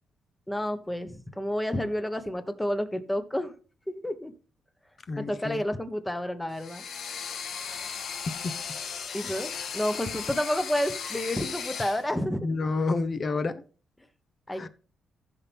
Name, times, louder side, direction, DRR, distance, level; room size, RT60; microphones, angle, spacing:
voice 1, 0.5-3.5 3.9-4.3 5.2-6.8 9.1-12.5 14.5-14.7, left 1 dB, 10° left, 1.3 m, -30 dB
voice 2, 5.1-5.6 8.3-8.5 12.4-13.6 14.6-14.7, left 3 dB, 40° left, 1.1 m, -29 dB
sound 1, 6.5-12.1, left 6 dB, 65° left, 1.5 m, -36 dB
15.0 x 5.8 x 3.6 m
cardioid pair, 105°, 0 cm